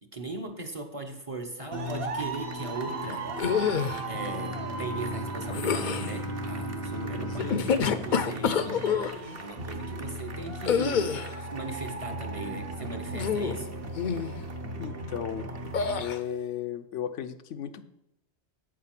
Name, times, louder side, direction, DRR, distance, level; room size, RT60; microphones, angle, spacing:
voice 1, 0.1-3.3 4.0-8.9 9.4-13.7, right 2 dB, 30° right, 4 dB, 0.8 m, -38 dB
sound 1, 1.7-16.0, right 1 dB, 55° right, 1.2 m, -37 dB
sound 2, 3.4-4.0 5.5-6.2 7.4-9.1 10.7-11.4 13.1-13.6 14.0-14.3 15.7-16.2, left 7 dB, 55° left, 0.6 m, -27 dB
Bowed string instrument, 4.0-8.9, right 2 dB, 90° right, 2.7 m, -38 dB
voice 2, 7.3-7.7 14.8-15.5 16.0-17.8, left 9 dB, 90° left, 9 dB, 1.0 m, -35 dB
8.2 x 7.6 x 5.9 m, 0.84 s
omnidirectional pair, 1.2 m